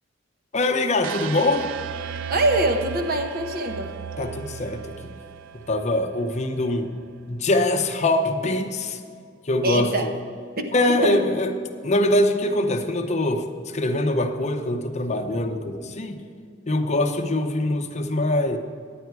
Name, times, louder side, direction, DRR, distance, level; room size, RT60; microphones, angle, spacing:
voice 1, 0.5-1.7 4.2-5.1 5.7-6.9 7.3-9.0 9.4-10.1 10.7-11.5 11.8-16.2 16.7-18.6, left 1 dB, 35° left, 5 dB, 0.7 m, -23 dB
sound 1, 1.0-7.1, right 8 dB, 75° right, 0.3 m, -35 dB
voice 2, 2.3-3.9 9.6-10.1 10.6-11.2, right 1 dB, 50° right, 5 dB, 0.9 m, -24 dB
10.0 x 9.4 x 4.6 m, 2.2 s
head